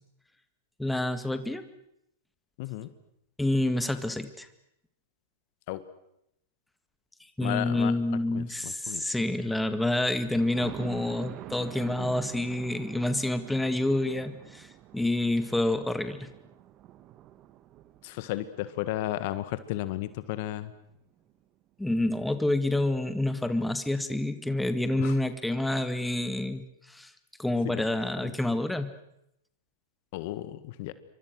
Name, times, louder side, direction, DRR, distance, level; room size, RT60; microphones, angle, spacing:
voice 1, 0.8-1.6 3.4-4.5 7.4-14.7 14.9-16.3 21.8-26.6 26.9-27.1 27.4-28.9, left 1 dB, 5° left, 10 dB, 1.9 m, -28 dB
voice 2, 2.6-2.9 5.7-5.8 7.4-7.9 8.3-9.0 18.0-20.7 25.0-25.1 28.2-28.3 30.1-30.9, left 15 dB, 50° left, 13 dB, 1.7 m, -33 dB
Thunder, 10.1-19.9 20.4-20.5 20.9-21.0 21.3-21.4, right 13 dB, 35° right, 1.6 m, -46 dB
28.0 x 24.5 x 6.5 m, 0.79 s
figure-of-eight pair, 100°, 0 cm